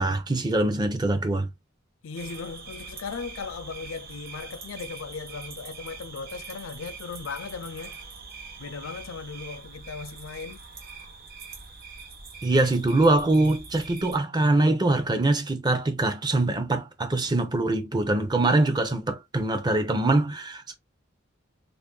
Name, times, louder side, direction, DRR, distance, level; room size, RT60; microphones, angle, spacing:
voice 1, 0.0-1.5 12.4-20.7, right 2 dB, 20° right, 0.5 m, -23 dB
voice 2, 2.0-8.0 8.6-10.6, left 5 dB, 80° left, 0.4 m, -37 dB
sound 1, 2.1-14.2, right 4 dB, 50° right, 0.8 m, -43 dB
2.5 x 2.4 x 3.6 m
head